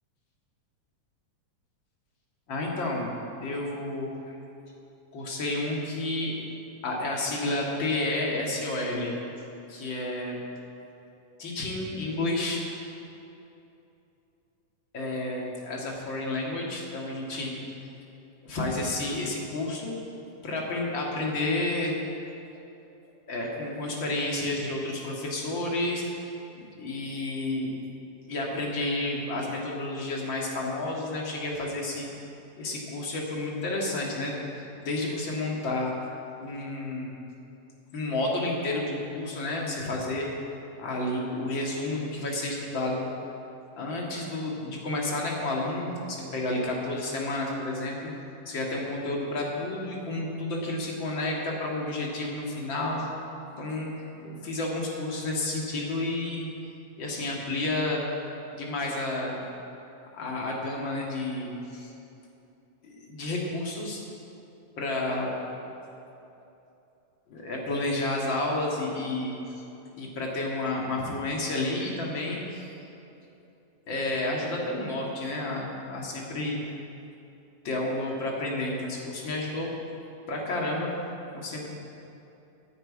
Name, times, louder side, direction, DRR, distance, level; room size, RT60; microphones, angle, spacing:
voice 1, 2.5-3.1 3.4-4.4 5.1-6.4 6.8-9.1 9.7-10.4 11.4-12.6 14.9-17.5 18.4-20.0 20.4-22.0 23.3-26.3 26.5-27.7 28.3-32.1 32.6-35.9 36.4-37.1 37.9-40.3 40.8-43.1 43.7-48.1 48.5-53.1 53.6-56.5 57.0-58.0 58.5-59.4 60.1-61.9 62.8-64.0 64.8-65.3 67.3-69.6 69.9-72.7 73.9-76.6 77.6-79.7 80.3-80.9 81.3-81.7, left 2 dB, 40° left, -2 dB, 2.3 m, -31 dB
11.5 x 9.3 x 8.6 m, 2.8 s
omnidirectional pair, 3.7 m